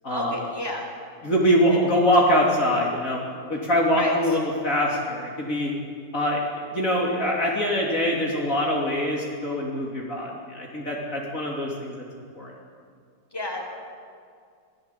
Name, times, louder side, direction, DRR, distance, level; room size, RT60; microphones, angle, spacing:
voice 1, 0.1-0.9 1.7-1.8 3.9-4.2 13.3-13.6, left 1 dB, 10° left, 0 dB, 4.6 m, -30 dB
voice 2, 1.2-3.2 3.5-5.7 6.1-6.4 6.7-12.0 12.4-12.5, equal, 50° left, -3 dB, 3.5 m, -23 dB
27.0 x 19.5 x 8.4 m, 2.2 s
omnidirectional pair, 1.9 m